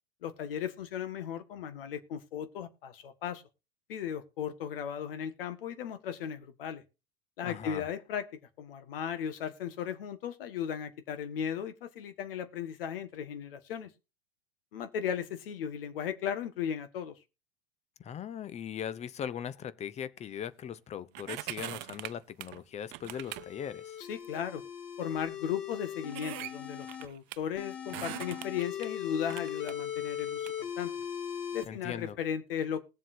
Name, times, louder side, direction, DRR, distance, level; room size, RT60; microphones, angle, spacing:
voice 1, 0.2-3.4 3.9-6.8 7.4-8.3 8.6-13.9 14.7-17.2 24.1-24.6 25.0-30.9 31.5-32.8, left 8 dB, 65° left, 1.6 m, -36 dB
voice 2, 7.4-7.8 18.0-24.0 31.7-32.2, left 9 dB, 20° left, 0.7 m, -39 dB
sound 1, 21.1-22.6 22.9-23.5 24.2-24.3 25.1-25.2 25.5-25.6 26.1-27.4 27.9-28.9 29.3-30.5 31.0-31.1, right 20 dB, 35° right, 0.4 m, -42 dB
sound 2, 23.1-27.1 27.6-31.6, left 9 dB, 35° left, 1.8 m, -39 dB
20.0 x 7.4 x 2.7 m
figure-of-eight pair, 90°, 31 cm